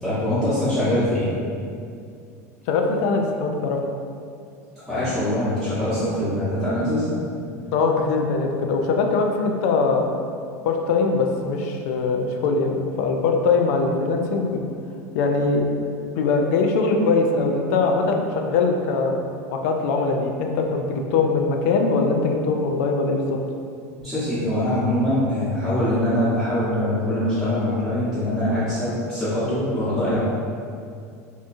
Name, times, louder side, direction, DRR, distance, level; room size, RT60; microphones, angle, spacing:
voice 1, 0.0-1.3 4.9-7.1 24.0-30.2, left 1 dB, ahead, -15 dB, 1.0 m, -23 dB
voice 2, 2.7-3.8 7.7-10.0 10.6-14.6 15.1-15.7 16.2-19.2 19.5-23.4, left 4 dB, 70° left, 3 dB, 0.3 m, -21 dB
2.9 x 2.2 x 2.5 m, 2.4 s
hypercardioid pair, 100°, 9 cm